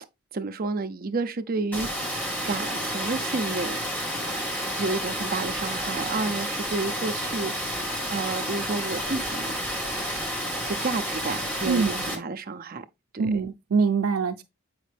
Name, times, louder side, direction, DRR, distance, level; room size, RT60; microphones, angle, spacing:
voice 1, 0.3-1.9 2.4-3.8 4.8-7.7 8.1-9.5 10.7-12.8 13.1-13.4, right 3 dB, 40° right, 0.6 m, -30 dB
Water, 1.7-12.2, equal, 10° left, 2.1 m, -30 dB
voice 2, 13.2-14.4, right 5 dB, 90° right, 0.5 m, -24 dB
8.3 x 5.0 x 3.3 m
head